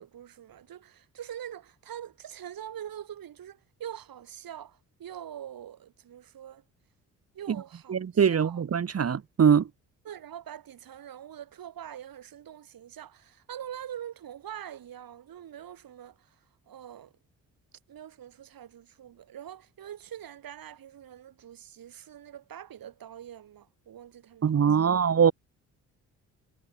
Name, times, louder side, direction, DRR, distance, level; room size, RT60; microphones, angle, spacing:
voice 1, 0.0-6.6 7.3-8.6 10.0-17.1 17.9-25.0, right 10 dB, 60° right, 4.5 m, -44 dB
voice 2, 7.9-9.7 24.4-25.3, right 7 dB, 40° right, 1.2 m, -22 dB
hypercardioid pair, 50°, 39 cm